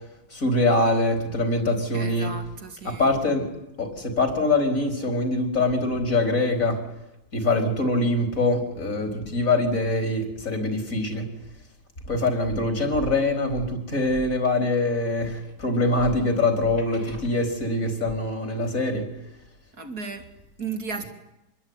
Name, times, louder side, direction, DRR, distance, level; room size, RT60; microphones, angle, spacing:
voice 1, 0.3-2.3 2.8-3.5 3.8-6.8 7.3-11.3 12.1-19.0, left 2 dB, 45° left, 5 dB, 4.9 m, -24 dB
voice 2, 1.9-3.1 19.8-20.3 20.6-21.1, right 5 dB, 55° right, 5 dB, 3.6 m, -34 dB
27.0 x 21.5 x 9.8 m, 0.91 s
omnidirectional pair, 1.9 m